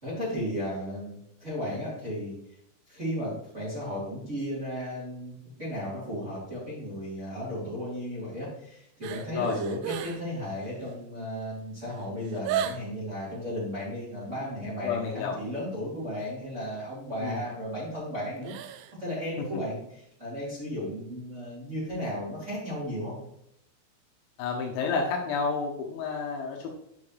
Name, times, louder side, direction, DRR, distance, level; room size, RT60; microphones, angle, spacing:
voice 1, 0.0-2.3 2.9-5.3 5.6-18.5 19.0-23.1, equal, 15° right, -9 dB, 2.9 m, -34 dB
sound 1, 9.0-10.3 10.6-11.0 11.6-11.7 11.9-13.0 18.4-19.0 19.3-19.4, right 9 dB, 90° right, 2.5 m, -35 dB
voice 2, 14.8-15.4 17.2-17.4 24.4-26.7, left 5 dB, 80° left, 1 dB, 3.1 m, -30 dB
9.8 x 5.7 x 3.2 m, 0.76 s
omnidirectional pair, 5.8 m